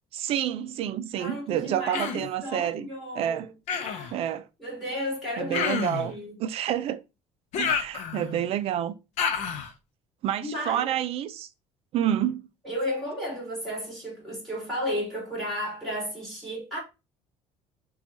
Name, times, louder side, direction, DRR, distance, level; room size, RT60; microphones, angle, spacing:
voice 1, 0.1-2.9 3.1-3.5 4.1-4.5 5.4-6.1 6.4-7.0 7.6-8.9 10.2-11.5 11.9-12.4, right 10 dB, 50° right, 0.4 m, -28 dB
voice 2, 1.1-3.4 3.7-4.2 4.6-6.3 10.4-10.9 12.6-16.8, equal, ahead, 2.6 m, -33 dB
Human voice, 1.9-2.3 3.7-4.1 5.5-6.1 7.5-8.4 9.2-9.7, left 7 dB, 60° left, 0.6 m, -29 dB
7.0 x 2.4 x 2.6 m
cardioid pair, 160°, 13 cm